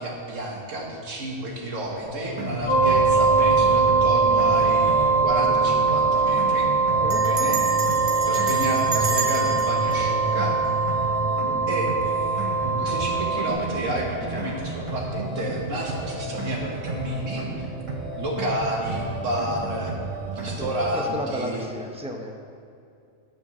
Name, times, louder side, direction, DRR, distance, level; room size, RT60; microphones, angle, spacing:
voice 1, 0.0-6.7 7.2-7.6 8.3-10.6 11.7-17.7 18.1-19.9 20.3-21.7, right 1 dB, 80° right, -1 dB, 1.8 m, -30 dB
sound 1, 2.0-20.9, right 2 dB, 30° right, 1.0 m, -32 dB
sound 2, 2.7-13.5, right 4 dB, 40° left, 1.5 m, -22 dB
Bell, 5.0-5.3 5.6-5.7 5.9-6.3 7.1-11.2, right 4 dB, 55° right, 1.1 m, -32 dB
voice 2, 20.6-22.3, equal, 5° right, 1 dB, 0.6 m, -32 dB
10.0 x 4.5 x 7.2 m, 2.5 s
omnidirectional pair, 1.3 m